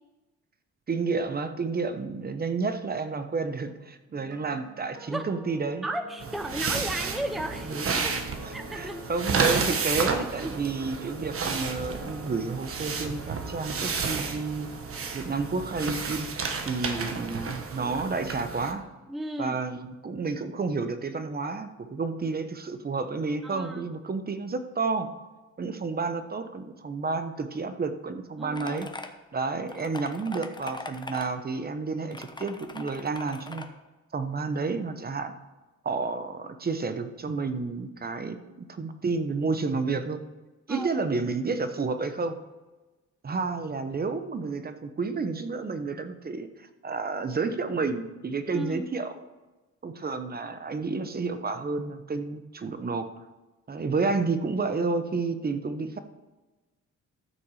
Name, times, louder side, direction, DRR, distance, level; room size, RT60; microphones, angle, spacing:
voice 1, 0.9-5.9 7.7-14.7 15.1-16.3 16.6-18.8 19.4-25.1 25.6-28.9 29.3-33.6 34.1-35.3 35.8-38.4 38.7-40.2 40.7-42.4 43.2-49.1 49.8-53.1 53.7-56.0, right 4 dB, 30° right, 9 dB, 1.0 m, -30 dB
sound 1, 4.1-18.2 18.4-18.7, right 1 dB, 85° right, 2.0 m, -49 dB
voice 2, 5.8-8.2 8.5-9.0 9.5-9.6 10.4-10.5 16.9-17.1 19.1-19.6 23.4-23.9 28.4-28.8 40.7-41.0 48.5-48.9, right 1 dB, ahead, 7 dB, 0.6 m, -35 dB
sound 2, 6.2-18.7, right 5 dB, 45° right, 1.3 m, -31 dB
sound 3, 28.6-29.1 29.7-31.3 32.1-33.7, left 3 dB, 15° left, 1.1 m, -40 dB
14.0 x 6.1 x 4.9 m, 1.2 s
cardioid pair, 90°, 30 cm